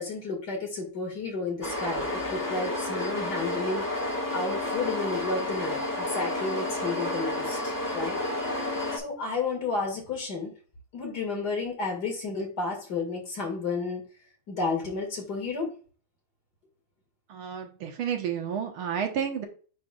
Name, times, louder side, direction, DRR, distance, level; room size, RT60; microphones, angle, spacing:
voice 1, 0.0-8.2 8.9-10.5 10.9-14.0 14.5-15.7, left 3 dB, 50° left, 1 dB, 2.7 m, -32 dB
sound 1, 1.6-9.0, left 1 dB, 10° left, 1.1 m, -31 dB
voice 2, 17.3-19.5, right 8 dB, 80° right, 4 dB, 1.9 m, -31 dB
9.1 x 4.6 x 2.3 m, 0.39 s
omnidirectional pair, 2.4 m